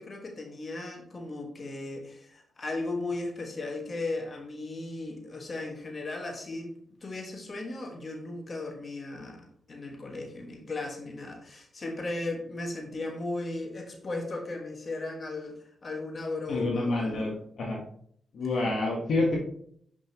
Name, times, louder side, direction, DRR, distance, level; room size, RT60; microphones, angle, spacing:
voice 1, 0.0-17.4, left 2 dB, 45° left, 2 dB, 1.5 m, -36 dB
voice 2, 16.5-17.3 17.6-17.8 18.3-19.4, left 2 dB, 70° left, -1 dB, 1.2 m, -27 dB
6.1 x 5.3 x 2.9 m, 0.64 s
cardioid pair, 60°, 0 cm